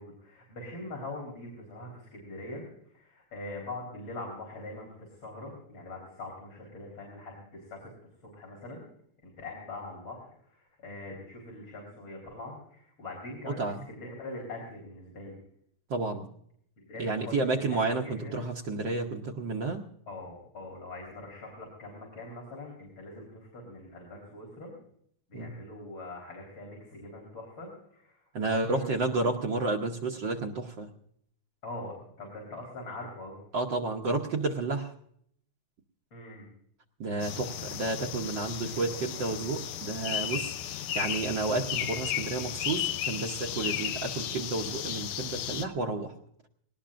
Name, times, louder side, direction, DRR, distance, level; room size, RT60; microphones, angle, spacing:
voice 1, 0.0-2.7 2.9-7.9 8.2-8.8 9.2-15.4 16.8-17.4 18.0-18.4 20.1-24.7 25.3-28.9 31.6-33.4 36.1-36.5 38.3-38.4 40.0-40.4 43.6-43.9, left 2 dB, 65° left, -2 dB, 4.8 m, -43 dB
voice 2, 15.9-16.3 17.0-19.8 25.3-25.6 28.3-30.9 33.5-34.9 37.0-46.1, right 3 dB, 60° right, 1 dB, 1.6 m, -31 dB
sound 1, 37.2-45.6, left 11 dB, 85° left, 1.8 m, -34 dB
19.5 x 18.5 x 2.5 m, 0.66 s
omnidirectional pair, 2.4 m